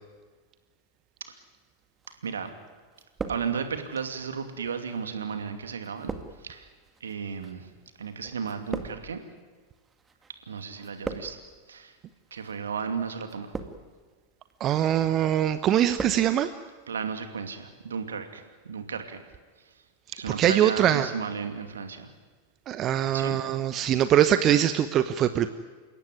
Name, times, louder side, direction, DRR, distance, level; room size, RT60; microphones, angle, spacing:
sound 1, 2.0-2.6 2.9-3.9 4.7-10.3 10.6-11.6 12.3-12.6 13.2-14.0 14.5-14.9 15.3-16.3 16.5-16.6, right 4 dB, 15° right, 2.0 m, -39 dB
voice 1, 3.3-6.7 7.0-7.7 8.0-9.2 10.5-11.4 11.7-11.9 12.3-13.5 16.9-19.2 20.1-22.1 23.1-23.4, right 6 dB, 70° right, 7 dB, 2.6 m, -34 dB
voice 2, 14.6-16.5 20.4-21.1 22.7-25.5, right 11 dB, 30° right, 11 dB, 1.0 m, -22 dB
29.0 x 17.0 x 9.6 m, 1.4 s
figure-of-eight pair, 90°, 0 cm